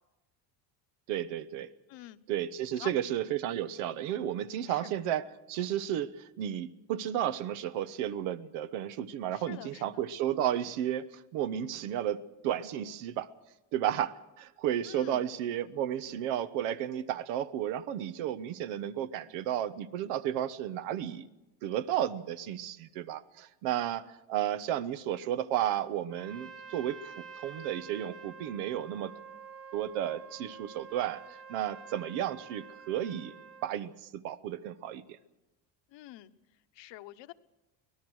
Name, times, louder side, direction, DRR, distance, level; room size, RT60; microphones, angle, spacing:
voice 1, 1.1-1.7 2.3-13.3 13.7-21.3 21.6-29.1 29.7-31.2 31.5-33.3 33.6-35.0, right 11 dB, 85° right, 13 dB, 1.2 m, -33 dB
voice 2, 9.3-10.0 14.9-15.3 35.9-36.3 36.7-37.3, left 16 dB, 60° left, 11 dB, 1.1 m, -47 dB
Trumpet, 26.1-33.8, right 6 dB, 30° right, 1.3 m, -48 dB
24.5 x 18.0 x 6.3 m, 1.0 s
cardioid pair, 130°, 49 cm